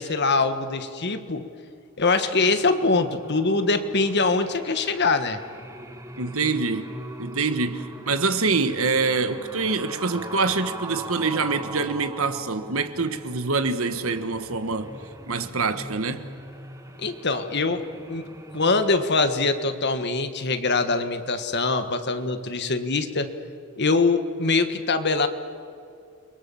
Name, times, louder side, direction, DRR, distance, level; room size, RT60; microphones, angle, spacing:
voice 1, 0.0-1.4 2.0-5.4 17.0-17.8 18.1-18.3 18.5-23.3 23.8-25.3, left 3 dB, 50° left, 1.6 m, -23 dB
sound 1, 2.3-18.9, right 1 dB, 15° right, 1.5 m, -41 dB
voice 2, 6.2-6.9 7.2-15.0 15.3-16.2, right 4 dB, 70° right, 1.5 m, -25 dB
29.5 x 23.0 x 7.2 m
head